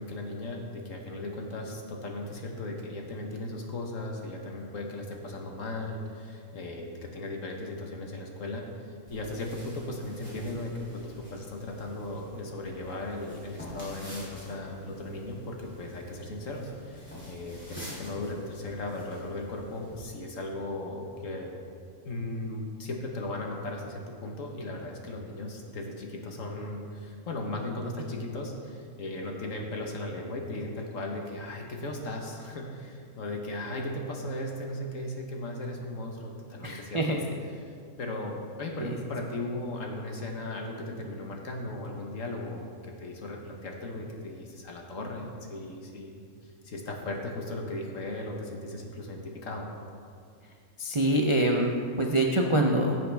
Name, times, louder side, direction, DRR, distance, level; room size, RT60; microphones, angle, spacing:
voice 1, 0.0-21.5 22.0-37.2 37.6-37.7 38.0-49.7, left 2 dB, 60° left, 1 dB, 1.6 m, -37 dB
sound 1, 9.1-20.0, left 1 dB, 5° left, 2.9 m, -47 dB
voice 2, 36.6-37.2 38.8-39.0 50.8-53.0, right 1 dB, 40° right, 0 dB, 0.4 m, -25 dB
15.0 x 7.6 x 3.5 m, 2.2 s
omnidirectional pair, 1.6 m